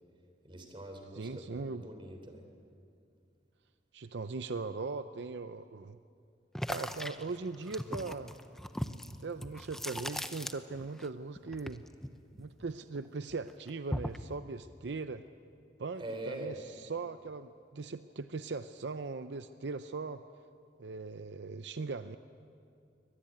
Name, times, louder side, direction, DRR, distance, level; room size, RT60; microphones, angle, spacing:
voice 1, 0.4-2.5 16.0-16.6, right 1 dB, 30° right, 4 dB, 3.5 m, -43 dB
voice 2, 1.1-1.9 3.9-6.0 6.7-8.3 9.2-11.8 12.4-15.2 15.8-20.2 20.8-22.2, right 4 dB, 75° right, 10 dB, 0.6 m, -39 dB
sound 1, 6.5-11.1 11.3-13.0 13.3-14.3, equal, 5° left, 0.7 m, -39 dB
24.0 x 19.5 x 9.0 m, 2.5 s
head